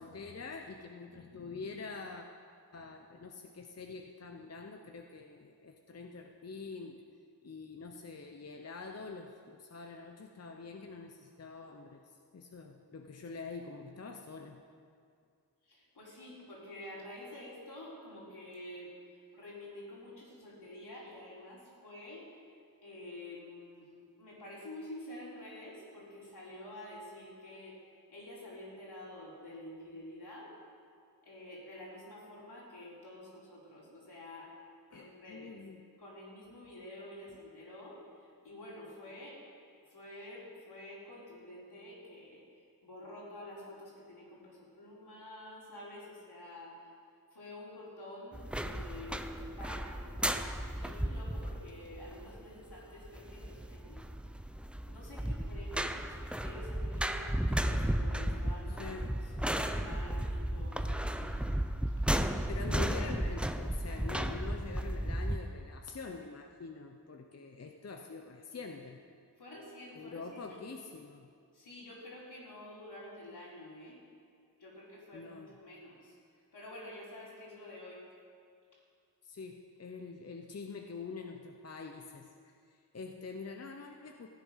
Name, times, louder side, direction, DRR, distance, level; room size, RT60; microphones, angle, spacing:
voice 1, 0.0-2.3 2.7-7.0 7.4-14.6 34.9-35.8 37.3-37.4 58.7-59.2 62.5-69.0 69.9-71.3 75.1-75.5 79.2-84.3, left 4 dB, 40° left, 3 dB, 0.8 m, -45 dB
voice 2, 15.6-18.9 19.3-22.3 22.8-27.8 28.1-30.5 31.2-34.5 34.9-35.5 36.0-39.4 39.8-46.9 47.3-54.2 54.9-61.4 61.9-62.0 69.4-70.6 71.5-74.0 74.6-76.2 76.5-78.0, left 1 dB, 75° left, -6 dB, 4.1 m, -49 dB
sound 1, 48.3-65.4, right 1 dB, 5° right, 0.5 m, -34 dB
15.5 x 9.0 x 5.7 m, 2.3 s
wide cardioid pair, 80°, 39 cm